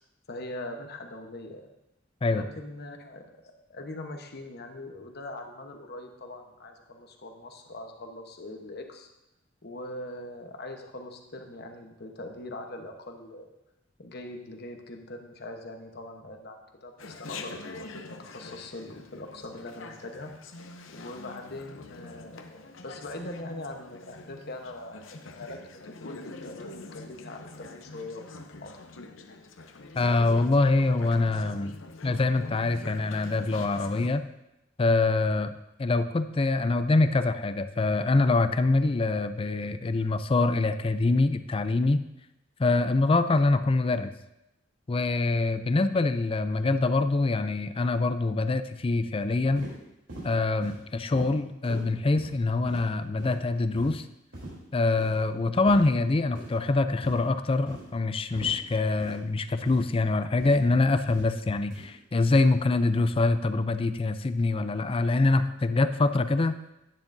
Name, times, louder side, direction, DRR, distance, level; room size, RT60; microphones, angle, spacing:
voice 1, 0.3-1.7 2.3-3.2 3.7-9.1 9.6-13.5 14.0-17.6 18.2-20.3 20.9-28.7, left 2 dB, 55° left, 4 dB, 1.1 m, -41 dB
Chatter, 17.0-34.1, left 3 dB, 85° left, 0.8 m, -44 dB
voice 2, 30.0-31.7 32.0-34.2 34.8-42.0 42.6-44.1 44.9-49.7 50.2-54.1 54.7-66.6, left 3 dB, 30° left, 11 dB, 0.4 m, -25 dB
sound 1, 49.6-49.7 50.1-50.3 50.6-50.8 51.1-51.3 51.6-51.8 52.2-52.3 52.7-52.8 53.2-53.4 53.7-53.9 54.3-54.5 55.0-55.2 55.7-55.8 56.3-56.5 57.0-57.2 57.7-57.8 58.3-58.5 59.0-59.2 59.6-59.8 60.4-60.6 61.1-61.3 61.7-61.9, right 1 dB, 70° right, 3.3 m, -41 dB
10.5 x 9.9 x 2.7 m, 0.90 s
head